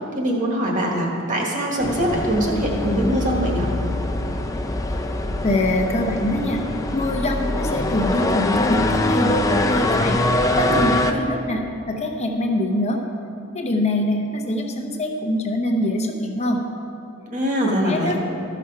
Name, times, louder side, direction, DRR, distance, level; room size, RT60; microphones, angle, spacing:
voice 1, 0.2-3.7 17.3-18.1, equal, 40° right, -1 dB, 1.6 m, -22 dB
sound 1, 1.8-11.1, left 2 dB, 15° left, 0.5 m, -23 dB
voice 2, 5.4-6.6 6.9-10.2 10.5-11.6 11.9-13.0 13.5-16.6 17.9-18.2, left 1 dB, 30° left, 2 dB, 0.9 m, -23 dB
13.5 x 6.0 x 4.7 m, 2.8 s
head